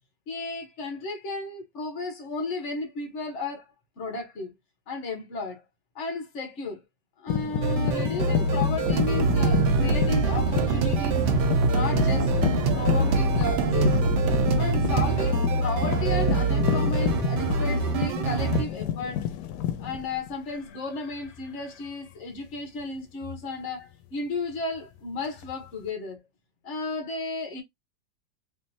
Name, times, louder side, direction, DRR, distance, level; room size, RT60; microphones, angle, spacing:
voice 1, 0.3-3.6 4.0-4.5 4.9-5.6 5.9-6.8 7.2-11.2 11.7-12.3 12.7-14.0 14.6-19.3 19.8-26.2 26.6-27.6, left 3 dB, 45° left, 1.3 m, -34 dB
sound 1, 7.3-20.8 21.0-21.5 23.2-23.4 25.3-25.9, left 10 dB, 85° left, 1.2 m, -30 dB
sound 2, 7.6-18.6, right 2 dB, 90° right, 1.3 m, -26 dB
sound 3, 8.9-15.3, right 6 dB, 65° right, 0.6 m, -26 dB
3.5 x 2.6 x 2.7 m
omnidirectional pair, 1.8 m